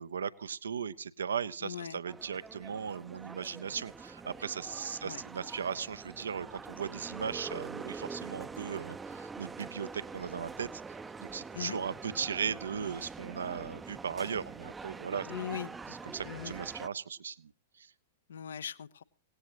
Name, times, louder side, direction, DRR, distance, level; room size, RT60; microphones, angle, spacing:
voice 1, 0.0-10.8 11.2-15.3 16.1-17.5 17.8-17.9, right 7 dB, 70° right, 16 dB, 0.7 m, -37 dB
voice 2, 1.6-2.0 5.0-5.2 11.5-11.8 15.3-15.7 16.2-16.5 18.3-19.0, left 9 dB, 65° left, 17 dB, 0.7 m, -40 dB
sound 1, 2.1-16.9, right 4 dB, 10° right, 0.6 m, -45 dB
18.0 x 17.5 x 3.0 m, 0.40 s
figure-of-eight pair, 100°, 0 cm